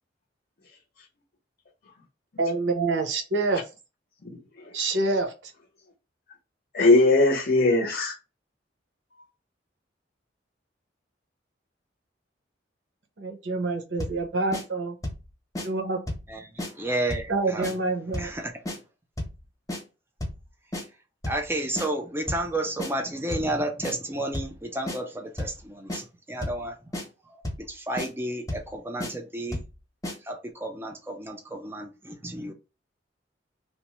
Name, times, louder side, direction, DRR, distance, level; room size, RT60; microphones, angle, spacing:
voice 1, 2.4-3.6 4.7-5.5 13.2-15.0 15.6-16.0 17.3-18.3, right 3 dB, 70° right, 0.7 m, -27 dB
voice 2, 4.2-4.8 6.7-8.1, left 2 dB, 50° left, 0.6 m, -21 dB
sound 1, 14.0-14.2 14.5-14.6 15.0-15.3 15.6-15.7 16.1-16.3 16.6-16.7 17.1-17.3 17.6-17.7 18.1-18.4 18.7-18.8 19.2-19.4 19.7-19.8 20.2-20.4 20.7-20.8 21.2-21.5 21.8-21.9 22.3-22.5 22.8-22.9 23.3-23.5 23.8-24.0 24.3-24.6 24.9-25.0 25.4-25.6 25.9-26.0 26.4-26.6 26.9-27.1 27.4-27.7 28.0-28.1 28.5-28.7 29.0-29.1 29.5-29.7 30.0-30.2, left 1 dB, 20° left, 0.8 m, -32 dB
voice 3, 16.3-17.7 18.2-18.5 21.3-26.8 27.7-29.6 30.2-32.5, right 1 dB, 10° right, 0.5 m, -31 dB
3.0 x 2.0 x 2.9 m
head